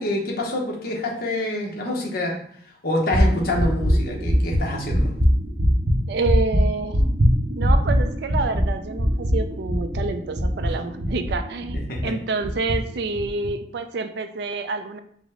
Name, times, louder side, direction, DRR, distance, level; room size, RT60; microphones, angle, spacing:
voice 1, 0.0-2.3 2.8-5.1 11.7-12.1, left 1 dB, 55° left, -1 dB, 0.9 m, -26 dB
sound 1, 3.1-12.1 12.4-12.8 13.1-13.5, equal, 40° right, 0.7 m, -21 dB
voice 2, 6.1-7.0 7.6-15.0, right 3 dB, 65° right, 8 dB, 0.4 m, -28 dB
4.9 x 2.1 x 3.6 m, 0.63 s
head